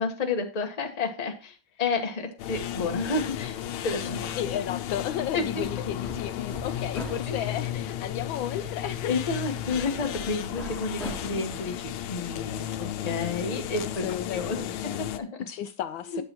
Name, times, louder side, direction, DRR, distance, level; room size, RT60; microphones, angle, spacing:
voice 1, 0.0-3.6 3.8-4.4 5.3-5.6 7.3-7.5 9.1-14.0 14.3-15.4 16.1-16.2, left 4 dB, 25° left, 1.0 m, -31 dB
sound 1, 2.4-15.2, left 11 dB, 90° left, 1.6 m, -34 dB
voice 2, 4.4-9.2 14.0-14.8 15.5-16.2, left 10 dB, 75° left, 1.3 m, -33 dB
Hammer, 5.2-13.1, left 1 dB, ahead, 2.3 m, -44 dB
8.3 x 8.1 x 2.9 m
omnidirectional pair, 2.3 m